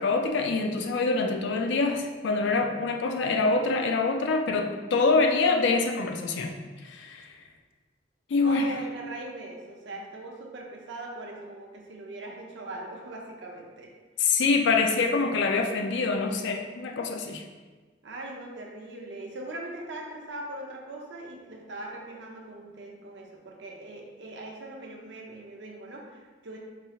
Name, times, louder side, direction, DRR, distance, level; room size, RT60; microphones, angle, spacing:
voice 1, 0.0-6.6 6.8-7.3 8.3-8.7 14.2-17.4, left 3 dB, 65° left, 4 dB, 0.4 m, -25 dB
voice 2, 8.4-13.9 18.0-26.6, right 2 dB, 60° right, 0 dB, 0.6 m, -40 dB
4.0 x 2.4 x 2.8 m, 1.3 s
head